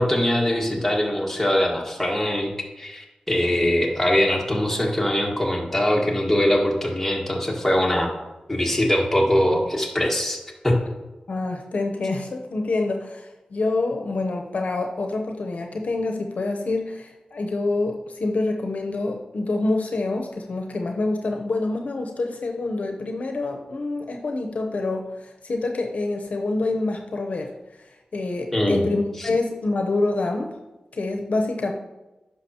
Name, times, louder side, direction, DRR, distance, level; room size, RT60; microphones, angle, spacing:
voice 1, 0.0-8.1 8.5-10.8 28.5-28.9 29.2-29.3, left 1 dB, 10° left, -2 dB, 1.7 m, -22 dB
voice 2, 11.3-27.5 28.1-30.5 30.9-31.7, left 2 dB, 70° left, 3 dB, 0.8 m, -26 dB
10.0 x 5.9 x 2.9 m, 1.0 s
wide cardioid pair, 85°, 3 cm